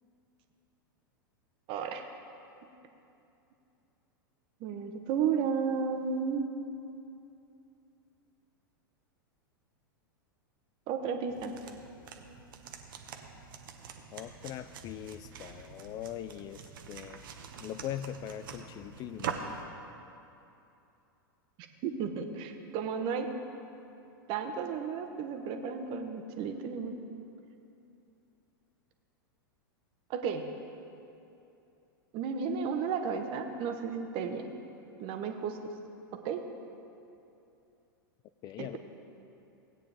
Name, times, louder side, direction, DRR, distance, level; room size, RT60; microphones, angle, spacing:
voice 1, 1.7-2.1 4.6-6.5 10.9-11.5 21.8-23.3 24.3-26.9 30.1-30.4 32.1-34.5 35.0-35.6 36.2-36.4 38.6-38.8, right 6 dB, 45° right, 5 dB, 1.1 m, -33 dB
sound 1, 11.3-19.6, right 7 dB, 70° right, 1.1 m, -44 dB
voice 2, 14.1-17.2 17.6-19.5 38.4-38.8, left 11 dB, 35° left, 13 dB, 0.4 m, -41 dB
16.5 x 9.0 x 3.4 m, 2.8 s
hypercardioid pair, 100°, 12 cm